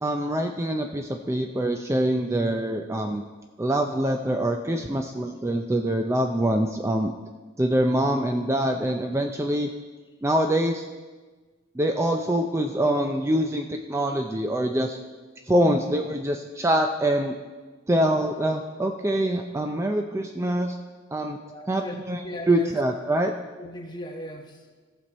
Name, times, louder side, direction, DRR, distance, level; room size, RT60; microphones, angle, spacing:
voice 1, 0.0-3.2 3.6-7.1 7.6-9.7 10.2-10.8 11.8-15.0 15.5-17.3 17.9-20.8 21.1-21.4 21.7-23.3, right 1 dB, 15° right, 4 dB, 0.4 m, -24 dB
voice 2, 21.4-22.8 23.6-24.7, left 1 dB, 25° left, 1 dB, 1.3 m, -37 dB
14.5 x 7.0 x 4.2 m, 1.3 s
head